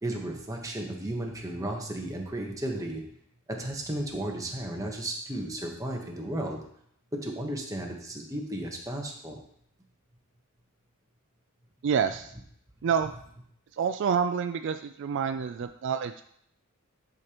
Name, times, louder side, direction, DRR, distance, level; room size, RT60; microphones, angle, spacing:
voice 1, 0.0-3.0 3.5-6.6 7.2-9.4, right 1 dB, 15° right, 0 dB, 1.1 m, -34 dB
voice 2, 11.8-12.3 12.8-13.1 13.7-16.2, right 7 dB, 60° right, 8 dB, 0.3 m, -28 dB
10.5 x 5.0 x 3.0 m, 0.68 s
head